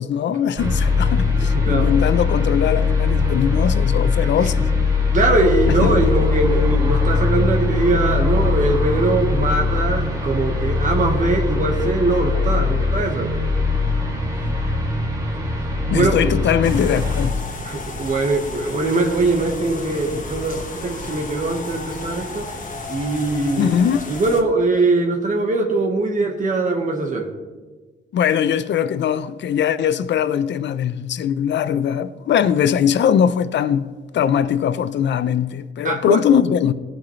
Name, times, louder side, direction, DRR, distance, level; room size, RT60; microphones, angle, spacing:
voice 1, 0.0-4.7 5.8-5.9 12.3-12.5 15.9-17.3 23.6-24.1 28.1-36.7, left 8 dB, 65° left, 0.6 m, -20 dB
sound 1, 0.6-17.3, left 4 dB, 20° right, 2.3 m, -20 dB
voice 2, 1.4-1.9 4.2-4.5 5.1-13.3 15.3-15.4 15.9-16.2 17.6-22.5 22.9-23.7 24.1-27.3 35.8-36.2, right 2 dB, 40° right, 1.4 m, -21 dB
sound 2, 16.6-24.4, left 3 dB, 40° left, 1.5 m, -33 dB
18.0 x 8.8 x 3.2 m
cardioid pair, 120°, 20 cm